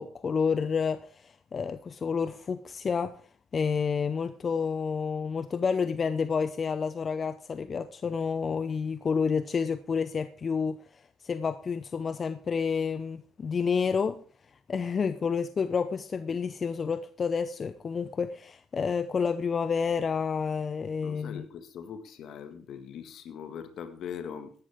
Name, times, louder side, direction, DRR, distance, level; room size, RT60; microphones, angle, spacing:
voice 1, 0.0-3.1 3.5-14.2 14.7-21.4, left 6 dB, 40° left, 0.7 m, -29 dB
voice 2, 21.0-24.5, left 8 dB, 65° left, 1.9 m, -41 dB
15.5 x 11.5 x 3.7 m
supercardioid pair, 80°, 0 cm